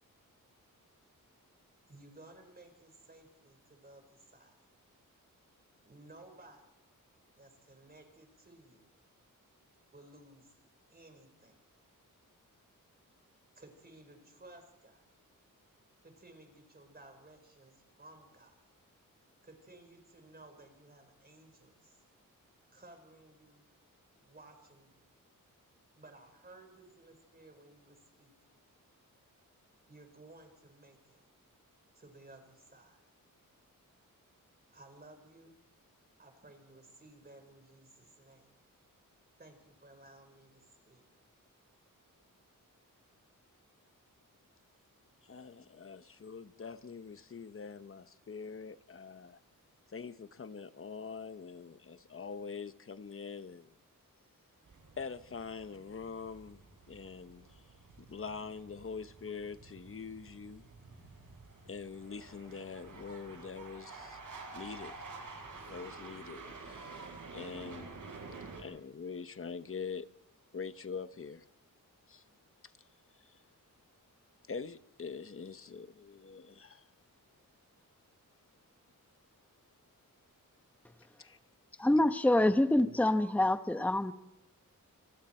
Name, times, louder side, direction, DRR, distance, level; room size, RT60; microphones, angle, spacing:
voice 1, 1.9-4.6 5.8-6.6 7.4-8.8 9.9-10.6 10.9-11.6 13.6-15.1 16.0-18.7 19.4-22.0 22.7-23.6 24.2-25.1 26.0-28.3 29.9-31.2 31.9-33.0 34.7-35.6 36.2-38.6 39.4-41.1, right 2 dB, 30° right, 4.7 m, -57 dB
voice 2, 45.3-49.4 49.9-53.8 55.0-56.6 56.9-57.6 58.0-60.6 61.7-64.2 64.5-65.0 65.7-67.1 67.3-67.9 68.6-70.1 70.5-71.4 72.1-72.2 73.2-73.4 74.5-76.9 81.2-81.4, left 5 dB, 40° left, 1.0 m, -44 dB
sound 1, 54.6-68.6, right 3 dB, 65° right, 7.2 m, -50 dB
voice 3, 81.8-84.1, left 1 dB, 5° left, 0.9 m, -26 dB
29.5 x 28.0 x 4.4 m
wide cardioid pair, 125°, 33 cm